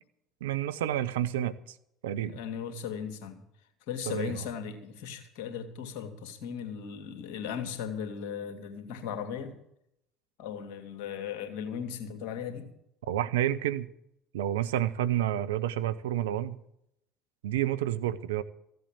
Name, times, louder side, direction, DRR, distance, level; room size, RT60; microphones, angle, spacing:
voice 1, 0.4-1.5 2.0-2.3 4.1-4.5 13.1-13.9 14.3-16.6 17.4-18.4, right 12 dB, 80° right, 13 dB, 0.7 m, -29 dB
voice 2, 2.2-3.4 3.9-9.6 10.4-12.7, left 7 dB, 65° left, 6 dB, 2.3 m, -37 dB
15.0 x 8.0 x 8.9 m, 0.76 s
hypercardioid pair, 65°, 0 cm